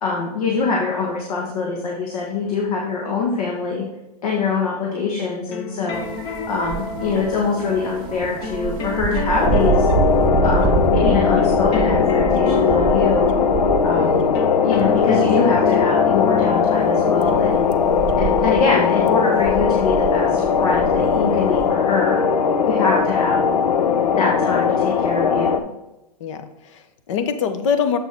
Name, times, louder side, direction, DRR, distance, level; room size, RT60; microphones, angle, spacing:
voice 1, 0.0-3.8 4.2-6.0 6.5-9.9 10.4-13.3 13.8-14.1 14.6-17.7 18.2-22.2 22.7-23.4 24.1-25.6, left 4 dB, 65° left, -2 dB, 1.6 m, -23 dB
sound 1, 5.5-20.1, left 3 dB, 20° left, 0.7 m, -31 dB
sound 2, 5.9-14.4 14.7-15.2 15.7-15.8 16.7-21.7, right 9 dB, 20° right, 0.4 m, -27 dB
sound 3, 9.4-25.6, left 6 dB, 85° left, 0.6 m, -19 dB
voice 2, 14.0-14.3 26.2-28.0, left 7 dB, 50° left, 9 dB, 0.9 m, -24 dB
7.5 x 6.0 x 3.6 m, 0.98 s
hypercardioid pair, 140°, 21 cm